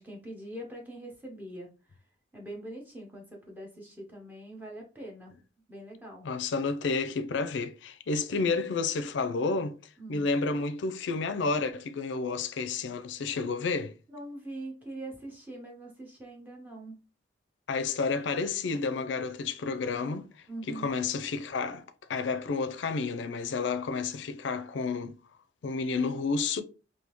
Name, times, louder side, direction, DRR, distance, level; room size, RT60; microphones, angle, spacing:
voice 1, 0.0-1.7 2.3-5.3 5.7-6.3 10.0-10.3 14.1-16.9 20.5-20.9, right 1 dB, 10° right, 0.7 m, -43 dB
voice 2, 6.2-9.8 10.1-13.9 17.7-20.3 20.7-21.8 22.1-25.2 25.6-26.6, left 4 dB, 80° left, 0.4 m, -30 dB
3.5 x 2.7 x 2.9 m
head